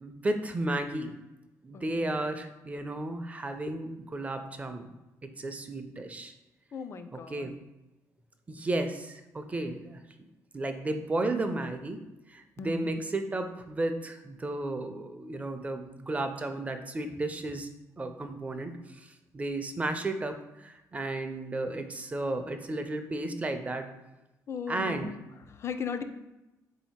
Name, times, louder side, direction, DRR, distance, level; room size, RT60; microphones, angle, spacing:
voice 1, 0.0-1.1 1.6-5.0 5.2-6.3 7.3-7.5 8.5-10.0 10.5-12.0 12.3-17.7 18.0-23.9 24.7-25.1, right 2 dB, 20° right, 7 dB, 0.4 m, -33 dB
voice 2, 1.7-2.2 6.7-7.5 12.6-12.9 24.5-25.2 25.5-26.0, left 6 dB, 40° left, 9 dB, 0.4 m, -37 dB
3.9 x 2.7 x 4.3 m, 0.98 s
cardioid pair, 110°, 7 cm